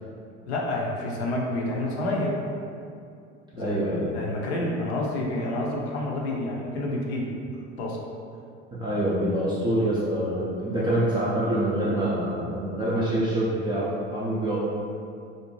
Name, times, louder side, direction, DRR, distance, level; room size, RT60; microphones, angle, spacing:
voice 1, 0.5-2.4 3.5-3.8 4.1-7.3 7.8-8.0, left 1 dB, 65° left, -2 dB, 0.6 m, -28 dB
voice 2, 3.6-4.1 8.7-14.6, right 1 dB, 15° right, -9 dB, 0.4 m, -26 dB
2.6 x 2.0 x 3.0 m, 2.4 s
figure-of-eight pair, 65°, 35 cm